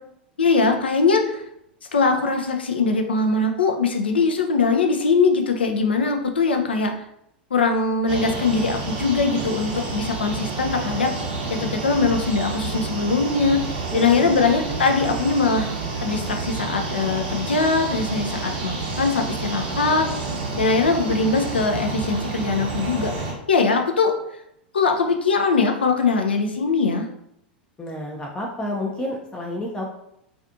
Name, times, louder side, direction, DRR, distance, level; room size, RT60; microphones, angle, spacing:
voice 1, 0.4-1.4 1.9-6.9 7.5-11.1 11.5-13.6 13.9-15.7 16.0-20.1 20.6-24.1 24.7-27.1, left 4 dB, 85° left, 4 dB, 0.4 m, -21 dB
sound 1, 8.1-23.3, right 3 dB, 65° right, 0.7 m, -29 dB
voice 2, 13.9-14.3 27.8-29.8, left 1 dB, 15° left, -1 dB, 0.4 m, -30 dB
2.5 x 2.4 x 2.5 m, 0.78 s
hypercardioid pair, 90°, 5 cm